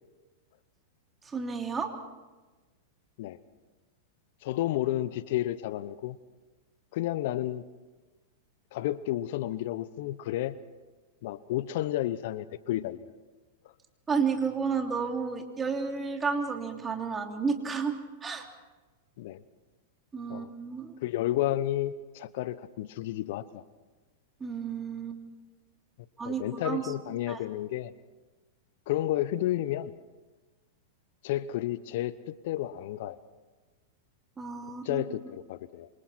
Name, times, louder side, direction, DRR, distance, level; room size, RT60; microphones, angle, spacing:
voice 1, 1.2-1.9 14.1-18.5 20.1-20.9 24.4-25.2 26.2-26.8 27.3-27.4 34.4-35.0, right 5 dB, 20° right, 3 dB, 3.1 m, -31 dB
voice 2, 4.4-6.2 6.9-7.6 8.7-10.6 11.2-13.0 19.2-19.4 20.3-20.5 21.0-23.6 26.2-27.9 28.9-29.9 31.2-33.2 34.8-35.9, left 14 dB, 60° left, 16 dB, 0.9 m, -31 dB
27.0 x 26.0 x 4.4 m, 1.2 s
hypercardioid pair, 105°, 0 cm